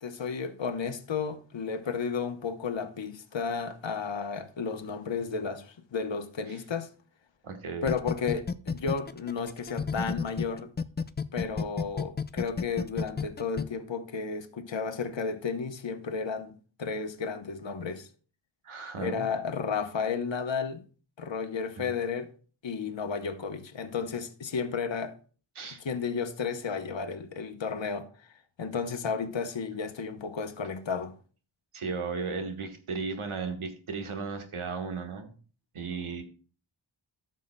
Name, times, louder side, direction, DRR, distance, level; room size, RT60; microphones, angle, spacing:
voice 1, 0.0-6.9 7.8-10.7 11.3-18.1 19.0-20.8 21.2-22.3 22.6-25.1 25.8-28.1 28.6-31.2, left 5 dB, 65° left, 1.0 m, -33 dB
voice 2, 7.4-7.9 18.6-19.3 21.8-21.9 25.5-25.8 31.7-35.3 35.7-36.2, right 4 dB, 90° right, 1.3 m, -35 dB
sound 1, 7.9-10.4 10.8-13.6, left 5 dB, 25° left, 0.3 m, -30 dB
13.5 x 6.5 x 2.2 m
wide cardioid pair, 80°, 48 cm